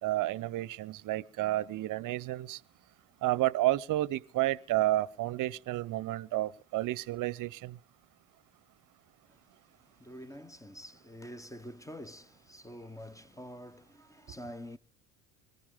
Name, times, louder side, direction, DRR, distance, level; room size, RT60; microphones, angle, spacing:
voice 1, 0.0-2.6 3.2-7.8, right 16 dB, 45° right, 0.8 m, -31 dB
voice 2, 9.8-14.8, equal, 5° left, 0.7 m, -47 dB
24.0 x 14.5 x 3.7 m
hypercardioid pair, 65°, 44 cm